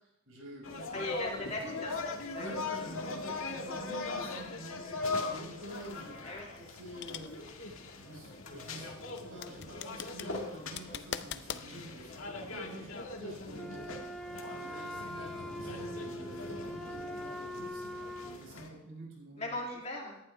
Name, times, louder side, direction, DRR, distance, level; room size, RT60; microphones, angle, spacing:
voice 1, 0.0-1.4 2.3-6.2 6.4-8.9 9.3-19.6, right 1 dB, 80° right, -2 dB, 5.6 m, -48 dB
sound 1, 0.6-18.7, left 3 dB, 85° left, 1.9 m, -41 dB
voice 2, 0.9-2.0 2.3-2.6 6.2-6.5 19.4-20.2, left 2 dB, 30° left, -1 dB, 2.4 m, -38 dB
sound 2, 6.1-11.7, left 8 dB, 55° left, 0.6 m, -43 dB
Wind instrument woodwind instrument, 13.5-18.4, equal, ahead, 0.5 m, -42 dB
18.0 x 11.0 x 3.4 m, 0.84 s
head